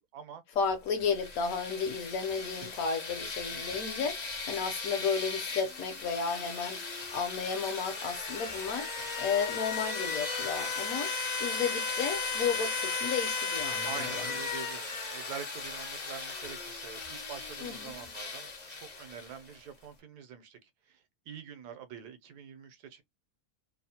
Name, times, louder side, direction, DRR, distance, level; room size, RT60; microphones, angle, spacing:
voice 1, 0.6-11.1 11.4-14.3 17.6-17.9, left 6 dB, 70° left, 1.1 m, -33 dB
sound 1, 0.9-19.6, left 4 dB, 50° left, 0.5 m, -36 dB
voice 2, 3.2-3.8 9.0-9.3 13.8-20.6 20.9-23.0, right 7 dB, 85° right, 1.2 m, -46 dB
3.0 x 2.1 x 2.7 m
omnidirectional pair, 1.7 m